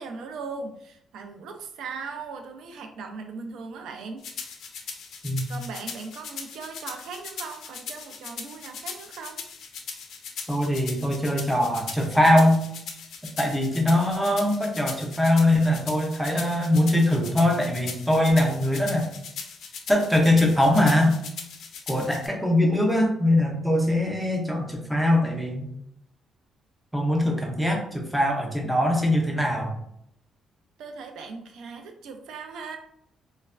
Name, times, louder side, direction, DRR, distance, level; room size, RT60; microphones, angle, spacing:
voice 1, 0.0-4.3 5.5-9.4 30.8-32.8, right 4 dB, 70° right, 5 dB, 0.4 m, -38 dB
sound 1, 4.2-22.3, left 6 dB, 60° left, 0.4 m, -39 dB
voice 2, 10.5-12.6 13.4-19.1 19.9-21.2 21.9-25.7 26.9-29.8, left 1 dB, ahead, 0 dB, 0.4 m, -22 dB
3.1 x 2.1 x 2.4 m, 0.73 s
cardioid pair, 175°, 0 cm